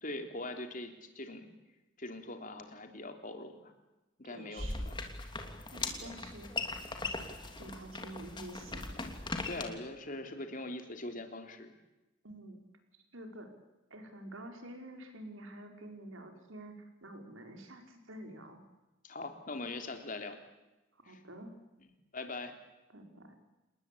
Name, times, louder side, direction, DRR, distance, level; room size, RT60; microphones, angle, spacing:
voice 1, 0.0-1.5 2.0-3.7 4.2-5.0 6.0-6.1 9.5-11.7 19.0-20.4 21.1-21.2 22.1-22.6, left 2 dB, 40° left, 5 dB, 3.4 m, -42 dB
voice 2, 4.3-5.0 5.7-6.7 7.6-9.0 12.2-12.6 12.9-13.5 13.9-18.6 20.9-21.5 22.9-23.4, right 1 dB, 80° right, 4 dB, 5.3 m, -48 dB
sound 1, 4.6-9.6, left 3 dB, 25° left, 3.1 m, -39 dB
28.5 x 20.5 x 8.7 m, 1.0 s
head